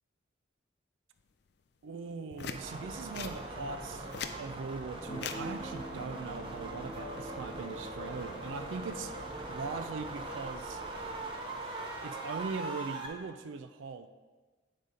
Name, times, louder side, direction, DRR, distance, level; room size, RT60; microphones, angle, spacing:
voice 1, 1.8-4.1 4.4-9.1 9.5-10.8 12.0-14.1, right 4 dB, 75° right, 9 dB, 0.4 m, -40 dB
sound 1, 2.3-2.6 3.1-3.4 3.9-4.4 5.2-5.4 6.7-7.0, left 7 dB, 55° left, 0.4 m, -39 dB
sound 2, 2.5-13.1, right 2 dB, 25° right, 0.8 m, -41 dB
Keyboard (musical), 5.1-12.6, equal, 20° left, 0.9 m, -47 dB
7.9 x 4.1 x 4.9 m, 1.3 s
head